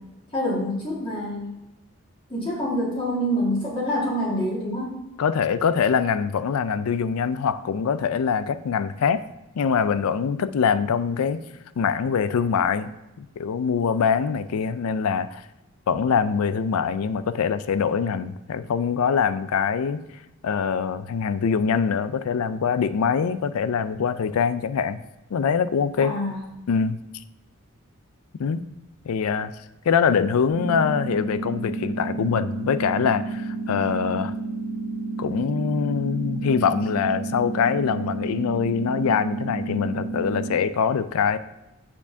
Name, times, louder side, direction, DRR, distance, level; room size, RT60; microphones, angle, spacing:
voice 1, 0.3-1.5 2.3-5.0 26.0-26.4, equal, 25° left, -6 dB, 1.9 m, -26 dB
voice 2, 5.2-9.2 9.5-11.4 11.8-12.9 13.2-15.4 15.9-20.0 20.4-25.0 25.3-26.1 26.7-27.0 28.4-28.7 29.1-29.5 29.8-34.3 35.2-41.4, left 6 dB, 85° left, 14 dB, 0.4 m, -23 dB
sound 1, 30.5-40.5, right 3 dB, ahead, 1.4 m, -31 dB
7.2 x 7.0 x 2.7 m, 0.97 s
head